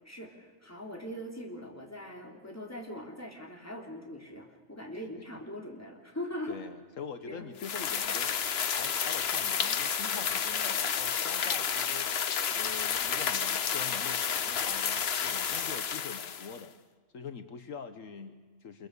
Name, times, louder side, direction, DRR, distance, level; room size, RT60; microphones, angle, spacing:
voice 1, 0.0-6.6 7.3-7.5, equal, 10° left, 1 dB, 3.5 m, -41 dB
voice 2, 6.5-8.5 8.8-16.7 17.1-18.9, left 6 dB, 70° left, 9 dB, 1.5 m, -44 dB
sound 1, 7.6-16.6, left 7 dB, 55° left, 1.1 m, -31 dB
26.5 x 23.0 x 6.7 m, 1.4 s
omnidirectional pair, 1.4 m